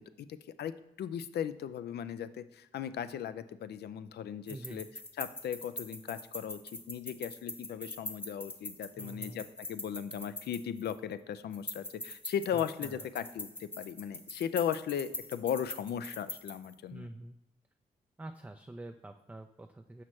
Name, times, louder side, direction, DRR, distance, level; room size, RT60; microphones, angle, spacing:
voice 1, 0.2-4.9 5.2-17.1, left 9 dB, 75° left, 13 dB, 0.4 m, -37 dB
sound 1, 4.5-11.1 11.5-16.7, left 1 dB, 10° left, 0.8 m, -43 dB
voice 2, 4.5-4.8 9.0-9.5 12.5-13.1 16.9-17.4 18.2-20.0, right 2 dB, 10° right, 6 dB, 0.4 m, -46 dB
6.1 x 5.7 x 3.1 m, 0.90 s
cardioid pair, 60°, 17 cm